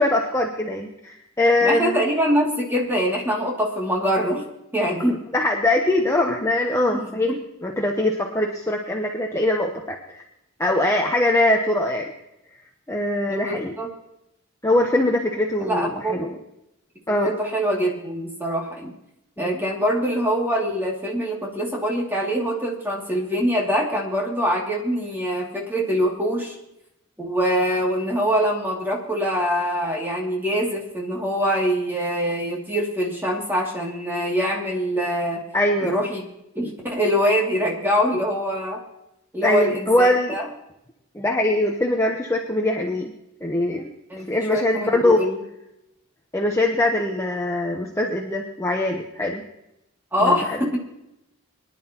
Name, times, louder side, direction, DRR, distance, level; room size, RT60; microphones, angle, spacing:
voice 1, 0.0-2.0 5.1-7.4 7.6-10.2 10.6-12.1 12.9-13.7 14.6-16.4 17.1-17.3 19.4-19.6 35.5-36.0 39.4-40.4 41.1-43.1 43.4-43.9 44.3-45.2 46.3-49.4 50.2-50.6, left 1 dB, 15° left, 1 dB, 0.9 m, -22 dB
voice 2, 1.6-4.4 4.7-5.2 6.9-7.4 13.3-13.9 15.6-16.1 17.2-18.9 19.4-26.6 27.2-35.4 35.8-36.3 36.5-38.8 39.3-40.5 44.1-45.4 50.1-50.8, equal, 10° right, -2 dB, 2.5 m, -24 dB
23.0 x 11.0 x 3.0 m, 0.85 s
head